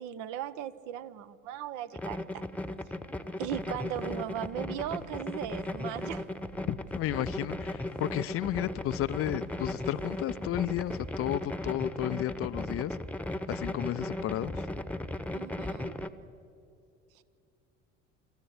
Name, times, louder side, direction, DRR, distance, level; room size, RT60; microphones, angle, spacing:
voice 1, 0.0-2.4 3.4-6.3 15.3-16.0, right 11 dB, 55° right, 13 dB, 1.0 m, -37 dB
sound 1, 1.9-16.1, left 1 dB, 5° left, 1.1 m, -36 dB
sound 2, 3.4-11.2, right 1 dB, 85° right, 6.6 m, -54 dB
voice 2, 6.7-13.0 13.5-14.7, left 13 dB, 40° left, 15 dB, 0.6 m, -33 dB
26.5 x 14.5 x 8.0 m, 2.7 s
figure-of-eight pair, 60°, 35 cm